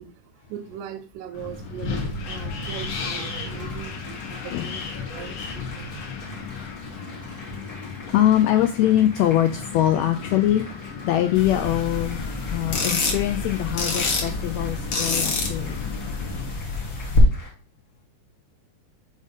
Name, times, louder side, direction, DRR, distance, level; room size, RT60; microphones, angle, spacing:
voice 1, 0.0-6.7 7.1-7.8, right 10 dB, 85° right, 2.1 m, -39 dB
Wind, 1.3-16.5, left 6 dB, 70° left, 1.3 m, -35 dB
Applause, 1.3-17.5, left 2 dB, 35° left, 1.4 m, -45 dB
voice 2, 8.0-10.6 11.0-15.9, left 12 dB, 85° left, 1.5 m, -23 dB
sound 1, 11.3-17.2, left 3 dB, 50° left, 1.6 m, -27 dB
5.0 x 4.2 x 5.2 m
omnidirectional pair, 3.6 m